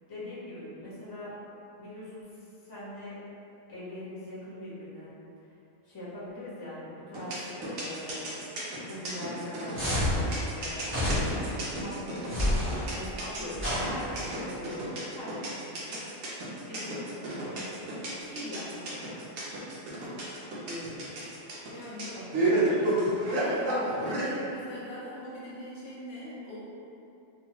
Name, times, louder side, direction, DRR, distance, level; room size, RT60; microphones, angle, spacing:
voice 1, 0.1-1.4 1.7-3.2 3.7-5.1 5.8-8.4 8.7-10.8 11.5-12.6 12.9-16.0 16.7-19.1 20.0-20.4 20.6-21.0 22.1-22.8, left 1 dB, 20° left, -10 dB, 0.6 m, -42 dB
sound 1, 7.1-24.3, right 2 dB, 90° right, 1.1 m, -31 dB
sound 2, 9.7-10.2 10.9-11.5 12.3-12.8 13.6-14.4, left 1 dB, 20° right, 0.3 m, -29 dB
voice 2, 21.7-22.8 23.3-26.6, left 1 dB, 70° left, -7 dB, 1.0 m, -41 dB
3.0 x 2.2 x 2.8 m, 2.8 s
omnidirectional pair, 1.3 m